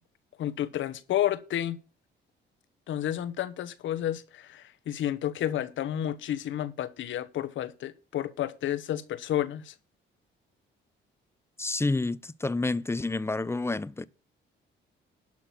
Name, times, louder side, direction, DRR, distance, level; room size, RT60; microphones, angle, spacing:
voice 1, 0.4-1.8 2.9-9.7, left 11 dB, 75° left, 1.1 m, -31 dB
voice 2, 11.6-14.0, left 3 dB, 15° left, 0.6 m, -29 dB
12.0 x 6.0 x 5.9 m
cardioid pair, 90°, 20 cm